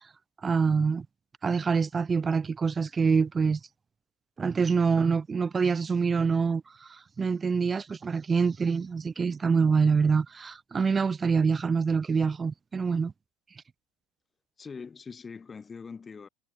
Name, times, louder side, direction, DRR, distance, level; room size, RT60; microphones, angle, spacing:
voice 1, 0.4-1.1 1.4-3.6 4.4-6.6 7.2-13.1, right 5 dB, 25° right, 0.3 m, -25 dB
voice 2, 14.6-16.3, left 5 dB, 25° left, 4.3 m, -42 dB
hypercardioid pair, 75°, 0 cm